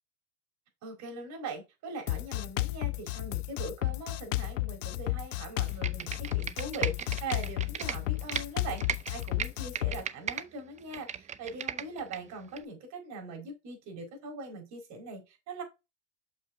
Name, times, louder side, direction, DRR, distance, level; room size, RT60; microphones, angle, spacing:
voice 1, 0.8-15.6, right 3 dB, 50° right, 4.5 m, -41 dB
Drum kit, 2.1-10.0, left 18 dB, 90° left, 0.5 m, -33 dB
Computer keyboard, 5.7-8.4 8.8-10.4 10.8-12.2 12.6-12.7, right 8 dB, 20° right, 0.6 m, -36 dB
6.5 x 5.7 x 3.7 m
hypercardioid pair, 105°, 36 cm